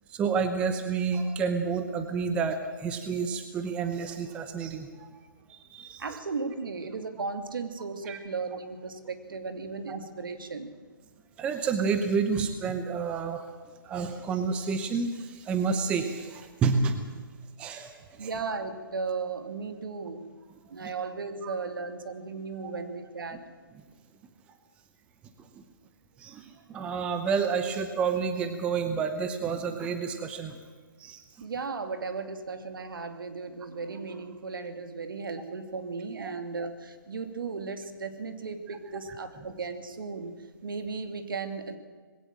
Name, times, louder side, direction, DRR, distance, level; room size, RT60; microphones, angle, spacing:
voice 1, 0.1-5.1 5.5-6.0 8.0-8.2 9.9-10.0 11.4-13.4 13.8-17.1 17.6-18.3 20.8-20.9 21.4-21.5 22.6-22.7 25.4-25.5 26.2-30.6 31.0-31.2 36.2-36.3, right 5 dB, 10° right, 8 dB, 0.9 m, -29 dB
voice 2, 6.0-10.7 18.2-20.2 20.6-23.4 31.4-40.3 40.6-41.8, right 4 dB, 70° right, 8 dB, 2.7 m, -36 dB
21.0 x 17.0 x 7.6 m, 1.6 s
hypercardioid pair, 165°, 12 cm